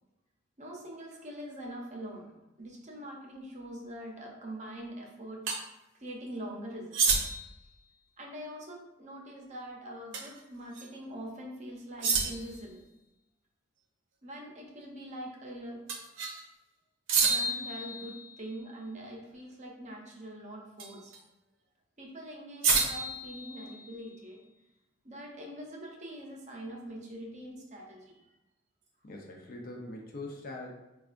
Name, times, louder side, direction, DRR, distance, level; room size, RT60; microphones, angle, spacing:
voice 1, 0.6-5.4 6.0-7.0 8.2-12.8 14.2-15.8 17.2-21.1 22.0-24.4 25.0-28.2, right 1 dB, 40° right, -1 dB, 0.7 m, -43 dB
sound 1, 5.5-5.6 6.9-7.6 10.1-10.4 10.8-10.9 12.0-12.6 15.9-16.4 17.1-18.5 20.8-21.2 22.6-24.0, right 4 dB, 80° right, 0.6 m, -29 dB
voice 2, 29.0-30.7, left 2 dB, 50° left, -1 dB, 0.6 m, -42 dB
4.6 x 2.3 x 2.5 m, 0.96 s
head